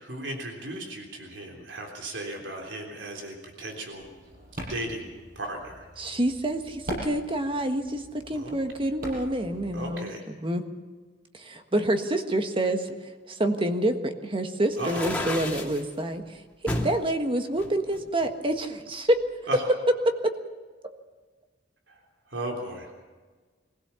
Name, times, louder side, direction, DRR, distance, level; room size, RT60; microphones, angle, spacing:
voice 1, 0.0-4.0 4.7-5.1 5.3-5.9 8.3-8.5 9.7-10.2 14.8-15.1 19.5-19.6 22.3-23.0, right 1 dB, 85° right, 2 dB, 3.5 m, -36 dB
sound 1, 3.9-9.9, equal, 55° right, 6.5 m, -42 dB
voice 2, 6.0-10.6 11.3-12.9 13.3-16.4 16.8-19.2 20.0-20.3, right 1 dB, 30° right, 6 dB, 1.5 m, -27 dB
sound 2, 14.7-15.8 16.7-17.0 17.6-18.6, left 1 dB, 10° left, 2.4 m, -31 dB
23.0 x 16.0 x 7.0 m, 1.4 s
head